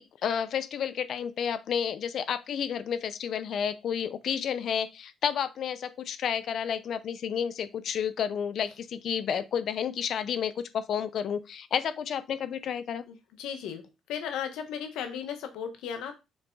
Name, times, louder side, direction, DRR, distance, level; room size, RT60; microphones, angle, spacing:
voice 1, 0.0-13.0, left 8 dB, 65° left, 0.6 m, -31 dB
voice 2, 13.4-13.8 14.1-16.1, left 8 dB, 90° left, 1.2 m, -35 dB
7.0 x 3.5 x 3.9 m
cardioid pair, 90°, 0 cm